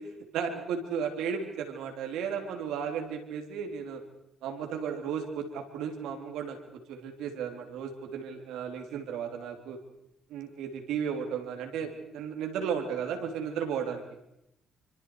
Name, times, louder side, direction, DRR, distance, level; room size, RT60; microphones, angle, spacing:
voice 1, 0.3-4.0 4.4-9.8 10.3-14.0, right 7 dB, 90° right, 5 dB, 3.3 m, -34 dB
27.5 x 25.0 x 4.8 m, 0.84 s
cardioid pair, 90°, 0 cm